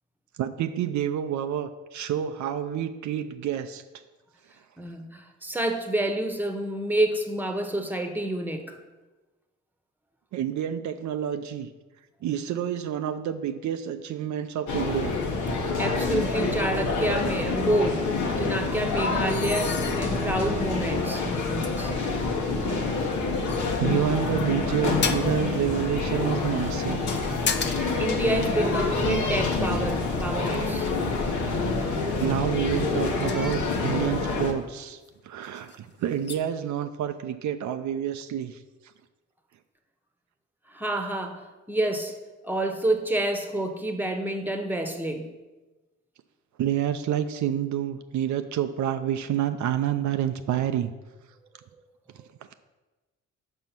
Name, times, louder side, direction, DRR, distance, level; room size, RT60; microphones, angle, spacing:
voice 1, 0.4-3.8 10.3-11.7 12.2-15.2 23.8-27.1 32.2-38.6 46.6-50.9, right 10 dB, 70° right, 8 dB, 0.5 m, -28 dB
voice 2, 4.8-8.8 15.8-18.0 18.4-21.9 27.6-30.9 40.7-42.2 42.4-45.3, right 1 dB, 5° right, 5 dB, 1.0 m, -28 dB
sound 1, 14.7-34.5, left 3 dB, 80° left, 1.1 m, -27 dB
sound 2, 19.2-20.4 21.0-21.1 21.6-21.7 22.9-23.2 23.5-24.4 25.0-25.5 27.0-28.0 28.3-28.4 29.2-31.2 32.6-34.1 35.0-35.1 35.4-35.8 36.2-36.4, left 6 dB, 35° left, 0.7 m, -34 dB
5.5 x 5.1 x 5.9 m, 1.2 s
cardioid pair, 65°, 30 cm